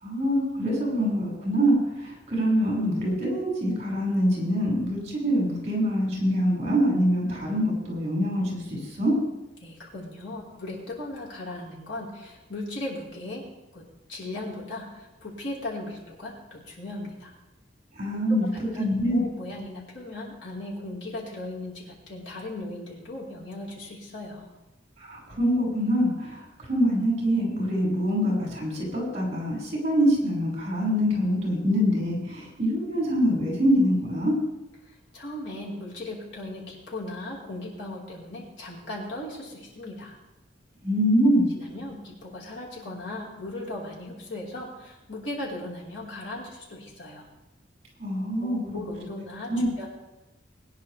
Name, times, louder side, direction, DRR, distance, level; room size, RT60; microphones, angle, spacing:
voice 1, 0.0-9.1 18.0-18.5 18.8-19.2 25.0-26.4 26.7-34.3 40.8-41.5 48.0-48.8 49.5-49.7, equal, 40° right, -3 dB, 6.3 m, -24 dB
voice 2, 9.6-13.4 13.7-17.3 18.7-24.5 35.1-40.2 41.5-47.3 48.4-49.9, left 1 dB, 80° left, -4 dB, 4.8 m, -37 dB
21.5 x 10.5 x 3.5 m, 1.0 s
head